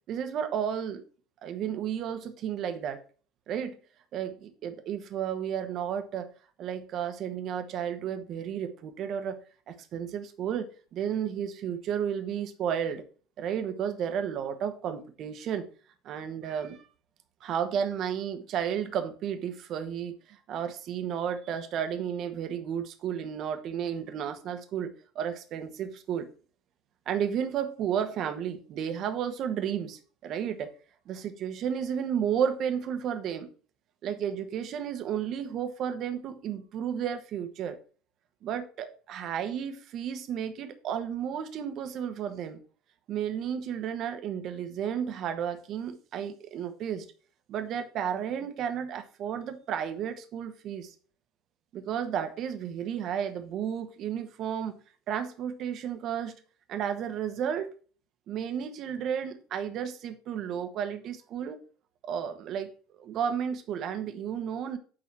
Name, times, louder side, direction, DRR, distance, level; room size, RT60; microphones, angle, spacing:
voice 1, 0.1-1.0 1.4-3.0 3.5-3.8 4.1-6.3 6.6-9.4 9.7-13.0 13.4-15.7 16.0-16.9 17.4-26.3 27.1-30.7 31.1-33.5 34.0-37.8 38.4-42.6 43.1-47.0 47.5-50.9 51.7-54.8 55.1-56.3 56.7-57.7 58.3-61.6 62.0-62.7 63.0-64.8, right 8 dB, 45° right, 1.3 m, -32 dB
8.9 x 4.0 x 5.9 m
figure-of-eight pair, 70°, 0 cm